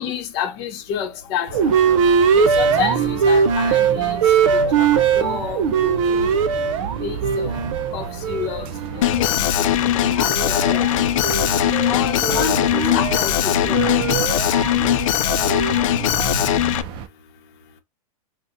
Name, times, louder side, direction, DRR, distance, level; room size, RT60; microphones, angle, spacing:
voice 1, 0.0-1.8 2.3-4.2 4.7-6.4 7.0-7.7 7.9-8.6 8.9-9.4 10.1-10.9 11.9-13.9, left 8 dB, 45° left, 0.9 m, -29 dB
sound 1, 1.5-17.1, right 6 dB, 30° right, 0.4 m, -33 dB
sound 2, 1.5-9.2 9.6-16.3, right 6 dB, 60° right, 0.7 m, -21 dB
Alarm, 9.0-16.8, left 12 dB, 65° left, 0.4 m, -20 dB
4.2 x 2.2 x 2.6 m
supercardioid pair, 145°, 18 cm